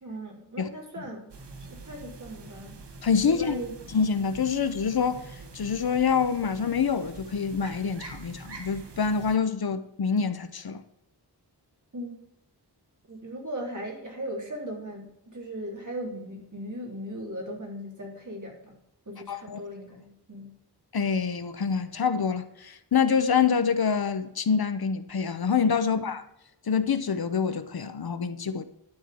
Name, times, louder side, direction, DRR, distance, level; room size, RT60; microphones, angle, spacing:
voice 1, 0.0-1.3 1.6-2.8 3.3-3.7 11.9-12.1 13.1-18.7 19.0-20.5 25.8-26.1, right 1 dB, 45° right, 3.4 m, -38 dB
sound 1, 1.3-9.4, right 3 dB, 85° right, 1.4 m, -45 dB
voice 2, 3.0-3.5 3.9-5.2 5.5-10.8 19.3-19.6 20.9-26.2 26.7-28.6, left 6 dB, 65° left, 0.9 m, -26 dB
11.5 x 4.6 x 8.4 m
wide cardioid pair, 105°, 41 cm